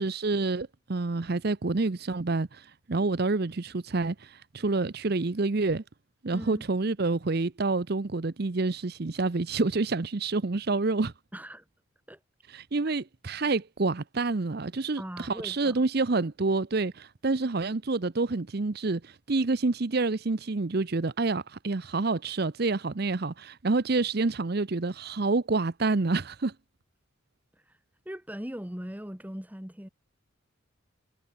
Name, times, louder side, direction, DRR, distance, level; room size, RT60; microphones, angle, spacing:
voice 1, 0.0-5.8 6.2-11.1 12.5-26.5, right 3 dB, 50° right, 0.7 m, -28 dB
voice 2, 6.3-6.6 11.3-11.6 12.1-12.2 15.0-15.8 27.7-27.8 28.0-29.9, equal, 10° right, 1.5 m, -39 dB
head